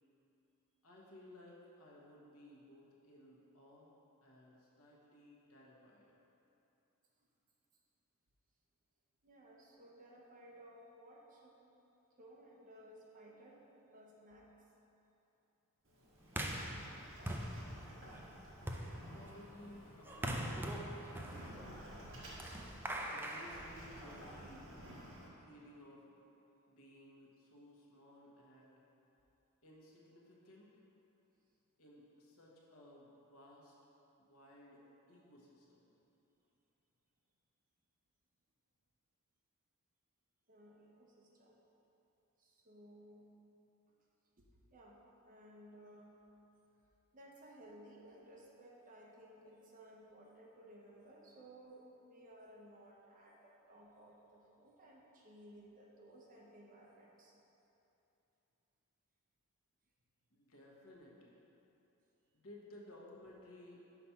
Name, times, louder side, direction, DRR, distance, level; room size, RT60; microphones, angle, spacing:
voice 1, 0.8-3.9 4.2-6.1 19.1-20.7 21.1-21.7 23.0-24.8 25.4-26.1 26.7-28.8 29.6-30.7 31.8-33.8 34.2-35.9 60.3-61.3 62.3-63.8, left 1 dB, 70° left, -4 dB, 1.2 m, -58 dB
voice 2, 9.2-11.6 12.2-14.7 40.5-41.6 42.4-43.4 44.4-46.3 47.1-57.4, right 1 dB, 40° right, -2 dB, 0.9 m, -58 dB
Sliding door, 15.8-25.3, equal, 60° right, 1.4 m, -54 dB
sound 1, 16.3-24.4, right 1 dB, 10° right, 0.4 m, -43 dB
5.8 x 4.2 x 5.7 m, 3.0 s
head